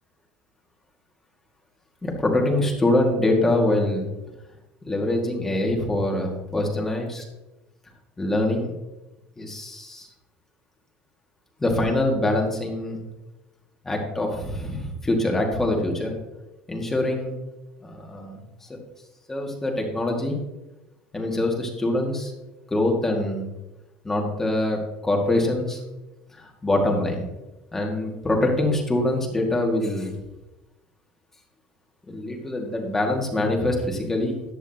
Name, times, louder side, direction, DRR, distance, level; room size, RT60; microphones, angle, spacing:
voice 1, 2.0-4.1 4.8-7.2 8.2-8.7 9.4-10.1 11.6-13.0 13.8-16.1 16.7-17.4 17.8-18.4 19.3-20.4 21.1-22.3 22.7-23.5 24.0-25.8 26.3-27.2 27.7-30.1 32.1-34.4, left 1 dB, 10° left, 1 dB, 2.1 m, -24 dB
14.5 x 10.0 x 3.0 m, 1.0 s
cardioid pair, 150°, 3 cm